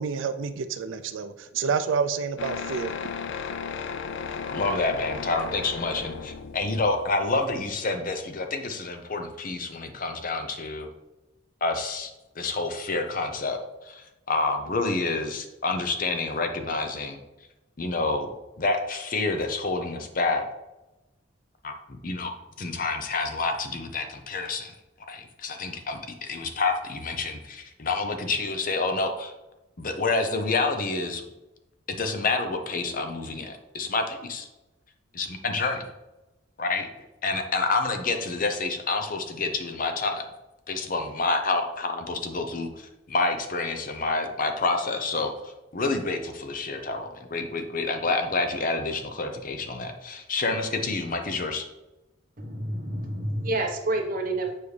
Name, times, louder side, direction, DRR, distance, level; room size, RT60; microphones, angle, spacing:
voice 1, 0.0-2.9, right 5 dB, 75° right, 10 dB, 0.4 m, -28 dB
sound 1, 2.4-7.8, left 6 dB, 65° left, 0.4 m, -35 dB
voice 2, 4.5-10.9 11.6-12.1 12.4-17.2 17.8-18.3 18.6-20.4 21.6-21.7 22.0-22.3 22.6-24.7 25.1-29.3 29.8-31.2 31.9-34.5 35.1-35.9 36.6-36.9 37.2-40.3 40.7-51.7, left 3 dB, 45° left, 6 dB, 0.7 m, -28 dB
voice 3, 52.4-54.5, right 2 dB, 45° right, 1 dB, 1.2 m, -28 dB
7.2 x 4.9 x 3.3 m, 0.99 s
head